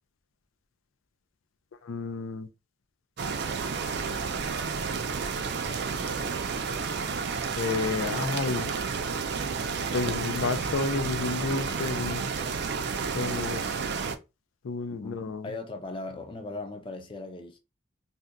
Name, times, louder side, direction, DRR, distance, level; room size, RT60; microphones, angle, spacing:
voice 1, 1.8-2.5 7.6-8.7 9.9-12.2 13.1-13.6 14.6-15.5, left 4 dB, 85° left, 0.4 m, -31 dB
sound 1, 3.2-14.1, right 5 dB, 55° right, 0.4 m, -31 dB
voice 2, 14.9-17.6, left 2 dB, 25° left, 0.4 m, -38 dB
2.7 x 2.2 x 3.7 m
head